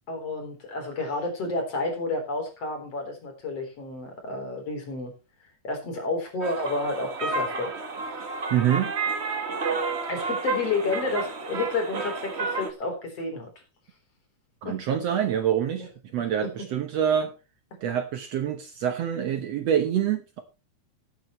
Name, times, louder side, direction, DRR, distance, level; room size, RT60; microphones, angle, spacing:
voice 1, 0.1-5.1 5.6-7.7 8.0-8.2 10.1-13.5 14.6-14.8, left 3 dB, 50° left, 3 dB, 4.8 m, -30 dB
sound 1, 6.4-12.7, right 4 dB, 90° right, 0.5 m, -31 dB
voice 2, 8.5-8.9 14.6-17.3 17.8-20.4, right 9 dB, 65° right, 8 dB, 1.9 m, -26 dB
18.0 x 9.4 x 3.1 m, 0.29 s
omnidirectional pair, 3.6 m